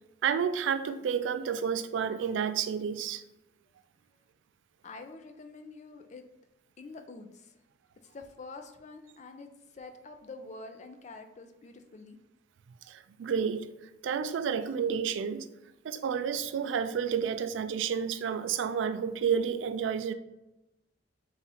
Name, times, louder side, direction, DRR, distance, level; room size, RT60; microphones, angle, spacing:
voice 1, 0.2-3.2 12.9-13.7 14.0-15.5 15.8-20.1, right 7 dB, 80° right, 0.3 m, -30 dB
voice 2, 4.8-6.2 6.8-7.6 8.0-12.2, left 3 dB, 40° left, 0.4 m, -47 dB
4.0 x 2.4 x 4.1 m
head